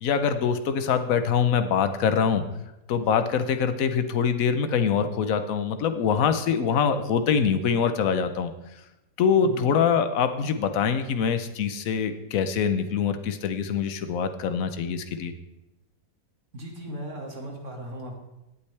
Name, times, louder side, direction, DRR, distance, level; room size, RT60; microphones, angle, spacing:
voice 1, 0.0-2.4 2.9-8.5 9.2-15.3, left 6 dB, 65° left, 9 dB, 1.2 m, -24 dB
voice 2, 9.4-9.8 16.5-18.2, right 1 dB, 50° right, 1 dB, 2.3 m, -37 dB
17.5 x 8.5 x 3.4 m, 0.94 s
omnidirectional pair, 1.7 m